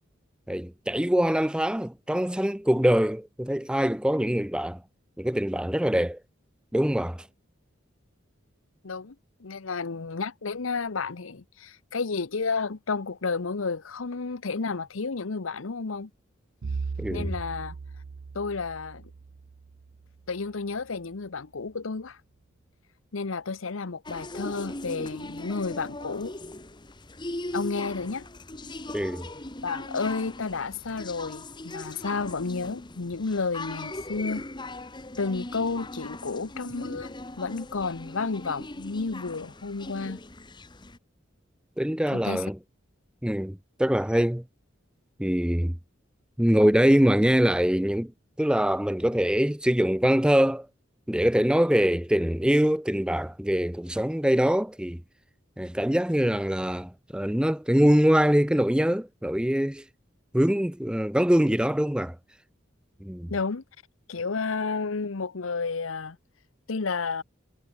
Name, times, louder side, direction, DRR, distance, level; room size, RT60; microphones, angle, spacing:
voice 1, 0.5-4.8 5.2-6.2 6.7-7.2 17.0-17.3 28.9-29.3 41.8-42.6 43.2-44.4 45.2-45.7 46.4-48.1 48.4-50.7 51.1-55.0 55.6-59.8 60.3-62.2 63.0-63.3, equal, 5° right, 0.6 m, -23 dB
voice 2, 8.8-9.1 9.4-16.1 17.1-17.8 18.3-19.1 20.3-22.2 23.1-26.3 27.5-28.3 29.6-34.4 35.2-40.2 42.1-42.4 63.3-63.6 64.1-66.2 66.7-67.2, left 4 dB, 90° left, 0.9 m, -31 dB
Bowed string instrument, 16.6-20.8, right 4 dB, 75° right, 0.5 m, -38 dB
sound 1, 24.0-41.0, left 2 dB, 20° left, 1.3 m, -39 dB
head